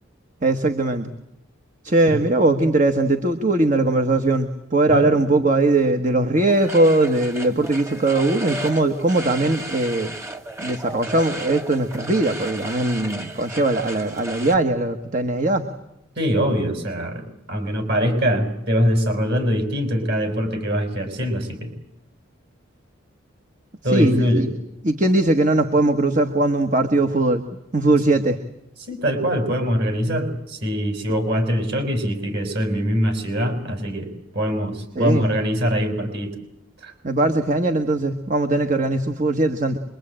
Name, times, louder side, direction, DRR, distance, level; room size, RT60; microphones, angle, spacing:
voice 1, 0.4-1.1 1.8-10.1 10.6-15.7 23.9-24.5 24.8-27.4 27.7-28.4 34.9-35.2 37.0-39.8, right 2 dB, 35° right, 6 dB, 1.4 m, -20 dB
voice 2, 4.9-5.4 16.2-21.7 23.8-24.4 28.8-34.1 34.3-36.3 36.8-36.9, equal, 50° right, 7 dB, 6.0 m, -23 dB
sound 1, 6.5-14.6, right 2 dB, 15° right, 1.6 m, -34 dB
26.0 x 23.0 x 8.9 m, 0.81 s
head